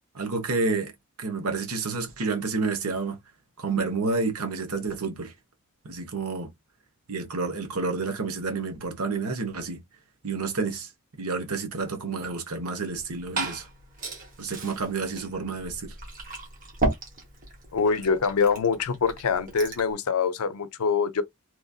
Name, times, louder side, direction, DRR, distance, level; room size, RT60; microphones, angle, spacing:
voice 1, 0.1-0.9 1.2-3.2 3.6-5.3 5.8-6.5 7.1-9.8 10.2-10.9 11.2-13.7 14.4-15.9, right 4 dB, 90° right, 1.0 m, -29 dB
Glass / Fill (with liquid), 12.9-19.9, right 2 dB, 35° right, 1.2 m, -35 dB
voice 2, 17.7-21.2, left 5 dB, 85° left, 0.5 m, -24 dB
3.0 x 2.6 x 2.3 m
head